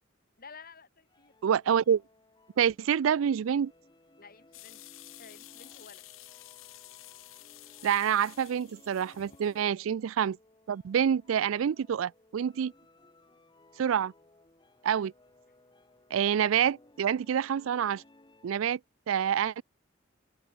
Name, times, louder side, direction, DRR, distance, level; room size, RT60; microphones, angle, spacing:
voice 1, 0.4-1.4 4.2-4.9 5.2-6.1 9.1-9.4, left 5 dB, 45° left, 5.6 m, -52 dB
sound 1, 1.1-18.8, left 2 dB, 25° left, 1.9 m, -61 dB
voice 2, 1.4-2.0 2.6-3.7 7.8-10.4 10.7-12.7 13.8-14.1 14.8-15.1 16.1-18.0 18.4-18.8 19.1-19.6, right 8 dB, 80° right, 0.4 m, -27 dB
sound 2, 4.5-9.6, left 17 dB, 80° left, 0.7 m, -51 dB
open air
head